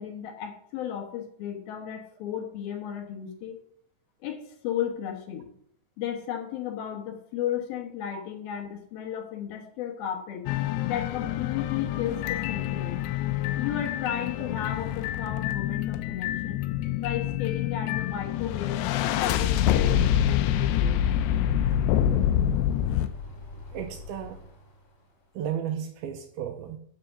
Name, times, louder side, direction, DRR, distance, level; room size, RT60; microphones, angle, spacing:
voice 1, 0.0-3.6 4.2-5.5 6.0-10.5 10.9-13.0 13.6-16.6 17.0-18.8 19.2-21.1, left 9 dB, 70° left, 2 dB, 2.8 m, -34 dB
sound 1, 10.5-23.1, left 11 dB, 85° left, 2.7 m, -26 dB
sound 2, 21.1-25.4, left 2 dB, 40° left, 2.7 m, -43 dB
voice 2, 23.7-24.4 25.4-26.8, right 9 dB, 80° right, 6 dB, 2.3 m, -34 dB
7.9 x 7.7 x 5.9 m, 0.65 s
omnidirectional pair, 4.9 m